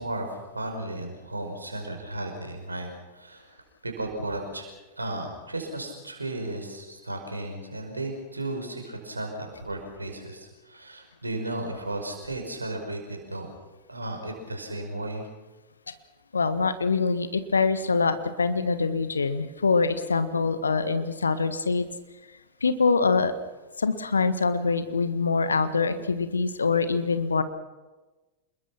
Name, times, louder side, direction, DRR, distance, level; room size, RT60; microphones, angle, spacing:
voice 1, 0.0-4.7 5.0-13.5 13.9-15.3, right 2 dB, 80° right, 3 dB, 5.3 m, -34 dB
voice 2, 16.3-21.9 22.6-23.3 23.8-27.4, left 4 dB, 75° left, 11 dB, 1.5 m, -24 dB
27.5 x 21.5 x 6.0 m, 1.2 s
figure-of-eight pair, 90°, 0 cm